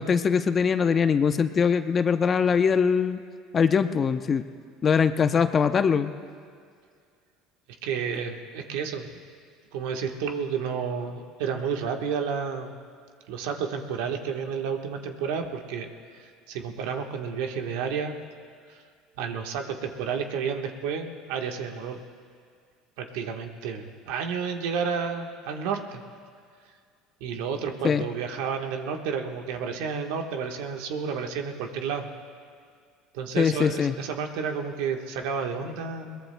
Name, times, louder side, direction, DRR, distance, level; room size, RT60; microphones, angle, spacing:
voice 1, 0.0-3.2 3.5-4.4 4.8-6.1 27.8-28.0 33.4-34.0, left 6 dB, 35° left, 10 dB, 0.6 m, -22 dB
voice 2, 7.8-9.1 9.7-12.8 13.3-18.2 18.7-18.8 19.2-22.0 23.0-26.0 27.2-32.1 33.1-36.2, right 6 dB, 80° right, 4 dB, 1.3 m, -31 dB
22.0 x 21.0 x 2.2 m, 2.2 s
supercardioid pair, 110°, 0 cm